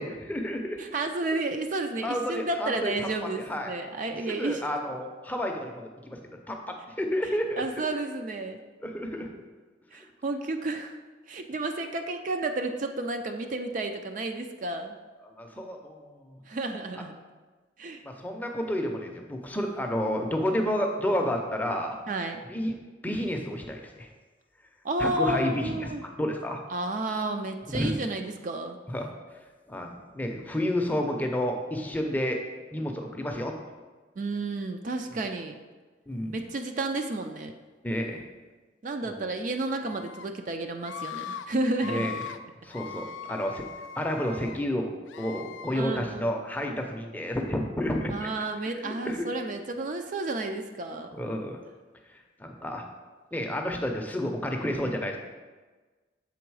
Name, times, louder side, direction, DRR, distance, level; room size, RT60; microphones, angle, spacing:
voice 1, 0.0-0.8 2.0-2.9 3.2-3.7 4.3-6.2 6.5-7.6 8.8-9.3 15.2-16.4 18.0-22.0 22.5-22.7 23.0-24.1 25.0-26.6 27.7-27.9 28.9-29.1 29.7-32.4 32.7-33.5 36.1-36.4 37.8-38.2 41.9-42.2 42.6-43.7 44.0-48.3 48.8-49.3 51.1-51.6 52.4-52.9 53.3-55.2, equal, 10° left, 2 dB, 0.5 m, -30 dB
voice 2, 0.8-4.6 7.6-8.6 9.9-11.0 11.3-15.0 16.5-17.1 17.8-18.0 22.1-22.4 24.8-26.0 26.7-28.8 34.2-35.6 36.3-37.5 38.8-42.1 45.7-46.3 48.1-51.1, right 2 dB, 45° right, 5 dB, 0.4 m, -31 dB
Screaming, 39.7-40.3 40.8-41.5 41.7-42.4 42.7-44.6 45.1-45.8, left 7 dB, 80° left, 0.4 m, -40 dB
7.1 x 3.8 x 4.7 m, 1.3 s
head